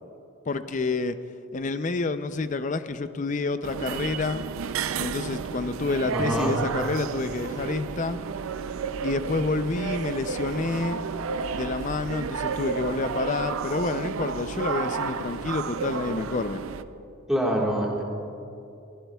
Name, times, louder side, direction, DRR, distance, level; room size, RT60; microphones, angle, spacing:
voice 1, 0.5-1.2 1.5-4.4 5.0-8.2 9.0-11.0 11.5-16.6, left 3 dB, 35° left, 11 dB, 0.4 m, -28 dB
sound 1, 3.6-16.8, right 5 dB, 75° right, 0.4 m, -32 dB
voice 2, 6.1-6.5 17.3-18.0, equal, 5° right, -3 dB, 1.6 m, -25 dB
22.5 x 15.5 x 2.3 m, 2.7 s
head